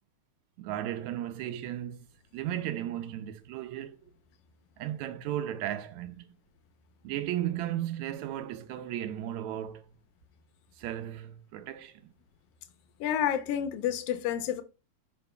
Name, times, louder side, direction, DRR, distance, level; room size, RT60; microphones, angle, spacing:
voice 1, 0.6-2.1 2.3-4.0 4.8-6.3 7.0-9.8 10.8-12.0, right 12 dB, 80° right, 1.8 m, -35 dB
voice 2, 13.0-14.6, left 10 dB, 70° left, 1.6 m, -29 dB
11.5 x 4.4 x 2.3 m
omnidirectional pair, 3.3 m